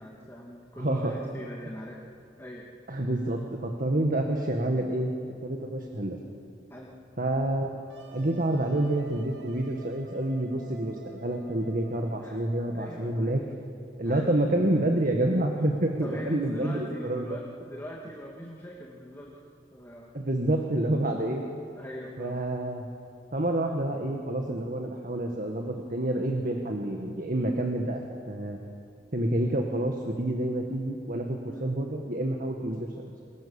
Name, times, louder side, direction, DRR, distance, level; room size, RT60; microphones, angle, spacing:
voice 1, 0.0-2.0 2.4-2.7 6.7-6.9 12.2-12.4 12.7-13.4 14.0-14.3 16.0-19.3 19.7-20.1 21.7-22.4 31.5-31.7, equal, 15° left, -2 dB, 2.4 m, -42 dB
voice 2, 0.8-1.1 2.9-5.1 5.4-6.2 7.2-7.8 8.1-13.4 14.0-17.4 20.1-21.4 22.2-22.9 23.3-28.6 29.1-32.9, right 1 dB, 50° right, 2 dB, 1.9 m, -28 dB
Wind instrument woodwind instrument, 7.9-13.4, right 2 dB, 75° right, 2.6 m, -50 dB
28.0 x 23.0 x 7.2 m, 2.6 s
head